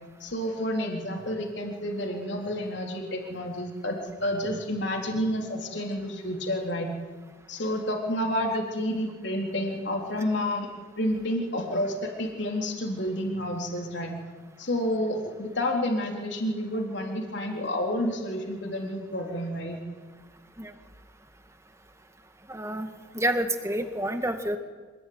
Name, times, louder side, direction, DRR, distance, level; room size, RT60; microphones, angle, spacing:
voice 1, 0.2-6.9 7.5-10.7 11.0-14.1 14.6-19.8, left 1 dB, 60° left, 1 dB, 3.9 m, -30 dB
voice 2, 22.5-22.9 23.1-24.6, right 1 dB, 15° right, 7 dB, 1.9 m, -28 dB
26.0 x 20.5 x 9.6 m, 1.4 s
head